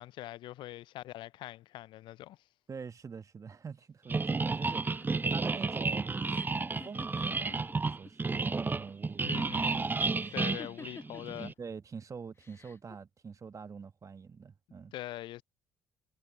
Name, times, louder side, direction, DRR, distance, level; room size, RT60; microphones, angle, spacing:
voice 1, 0.0-2.4 9.2-9.8 10.3-11.5 14.9-15.4, left 15 dB, 65° left, 0.4 m, -43 dB
voice 2, 2.7-6.2 6.8-10.3 11.3-14.9, right 5 dB, 35° right, 1.4 m, -45 dB
sound 1, 4.1-11.5, right 3 dB, 20° right, 0.5 m, -32 dB
sound 2, 4.5-8.1 8.4-9.1 10.2-11.4 12.4-13.0, left 4 dB, 30° left, 1.0 m, -51 dB
hypercardioid pair, 50°, 9 cm